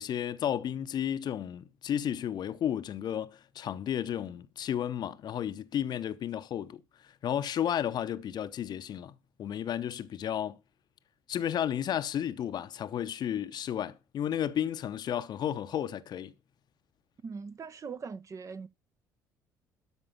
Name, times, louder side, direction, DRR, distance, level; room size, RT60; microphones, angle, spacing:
voice 1, 0.0-6.8 7.2-9.1 9.4-10.6 11.3-16.3, left 10 dB, 45° left, 0.8 m, -33 dB
voice 2, 17.2-18.7, right 5 dB, 35° right, 0.8 m, -41 dB
12.5 x 5.3 x 6.9 m
figure-of-eight pair, 50°, 10 cm